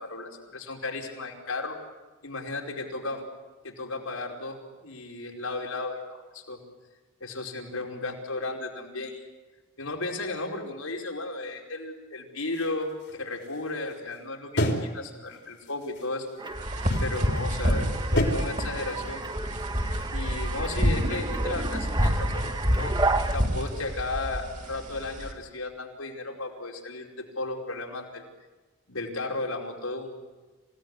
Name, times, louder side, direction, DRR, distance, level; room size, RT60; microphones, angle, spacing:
voice 1, 0.0-1.8 2.2-3.3 3.6-6.6 7.2-9.2 9.8-16.3 17.0-19.2 20.1-22.9 23.3-28.2 28.9-30.2, left 2 dB, 80° left, 0 dB, 5.1 m, -34 dB
sound 1, 12.5-14.2 14.6-15.0 15.3-16.5 16.9-17.3 18.2-18.3, left 1 dB, 55° left, 3.5 m, -31 dB
sound 2, 16.4-23.4, right 3 dB, 20° right, 1.3 m, -33 dB
sound 3, 16.5-25.3, equal, 35° right, 3.8 m, -28 dB
28.0 x 18.0 x 9.8 m, 1.3 s
head